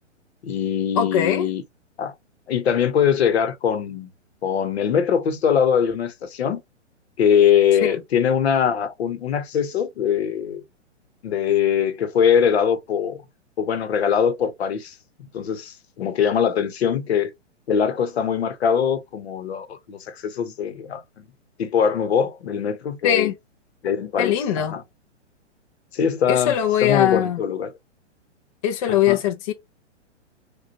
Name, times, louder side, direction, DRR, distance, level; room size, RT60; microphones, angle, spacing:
voice 1, 0.4-1.6 2.0-2.1 2.5-4.1 4.4-6.6 7.2-10.6 11.2-13.2 13.6-14.9 15.3-17.3 17.7-21.2 21.6-23.3 23.8-24.8 25.9-27.7 28.9-29.2, left 8 dB, 60° left, 0.9 m, -22 dB
voice 2, 1.0-1.5 23.0-23.3 24.2-24.8 26.3-27.4 28.6-29.5, left 10 dB, 30° left, 0.4 m, -21 dB
4.9 x 2.3 x 2.7 m
figure-of-eight pair, 120°, 36 cm